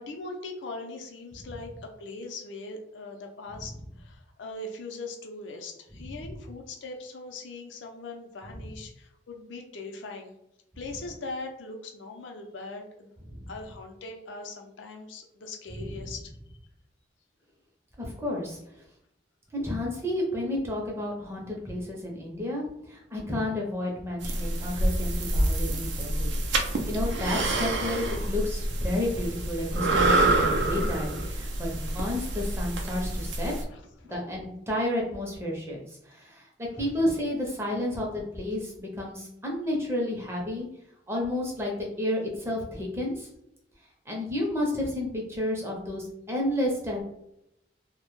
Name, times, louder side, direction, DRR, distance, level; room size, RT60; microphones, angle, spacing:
voice 1, 0.0-10.4 10.8-13.1 13.5-16.3 33.7-34.2 36.8-36.9, left 3 dB, 85° left, 3 dB, 0.5 m, -40 dB
voice 2, 18.0-18.6 19.5-33.5 34.1-35.8 36.0-36.5 36.8-40.7 41.1-43.3 44.1-47.0, left 1 dB, 15° right, -2 dB, 0.5 m, -31 dB
sound 1, 24.2-33.6, right 2 dB, 75° right, 0.4 m, -27 dB
2.1 x 2.0 x 3.0 m, 0.82 s
head